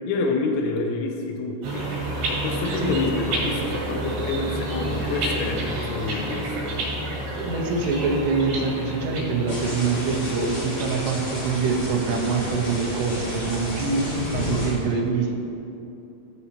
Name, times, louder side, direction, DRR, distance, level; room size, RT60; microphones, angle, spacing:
voice 1, 0.1-1.9 2.3-6.8 14.5-15.0, left 3 dB, 85° left, 3 dB, 2.5 m, -28 dB
sound 1, 1.6-10.9, right 1 dB, 60° right, 3.5 m, -29 dB
voice 2, 7.4-15.3, right 4 dB, 80° right, 0 dB, 2.6 m, -25 dB
sound 2, 9.5-14.7, left 1 dB, 50° left, 2.5 m, -31 dB
14.0 x 4.9 x 2.8 m, 2.8 s
omnidirectional pair, 5.7 m